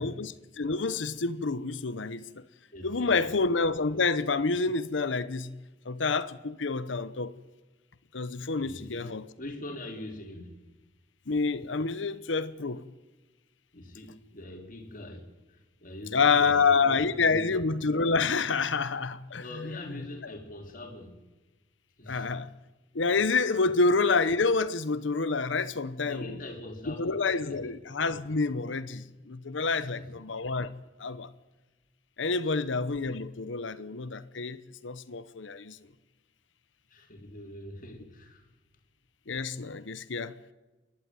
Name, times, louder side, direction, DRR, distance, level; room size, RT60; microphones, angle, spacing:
voice 1, 0.0-2.4 2.8-5.5 5.9-7.3 8.1-9.2 11.3-12.8 16.1-19.4 22.1-22.5 22.9-26.3 26.9-30.7 31.0-31.3 32.2-35.8 39.3-40.3, left 4 dB, 90° left, 0.9 m, -28 dB
voice 2, 2.7-3.4 8.4-9.1 9.4-10.6 13.7-15.3 15.8-17.6 19.4-21.1 22.0-22.3 26.0-27.5 29.7-30.2 32.4-32.6 36.9-38.5, left 1 dB, 50° left, 3.5 m, -43 dB
28.5 x 12.0 x 9.5 m
head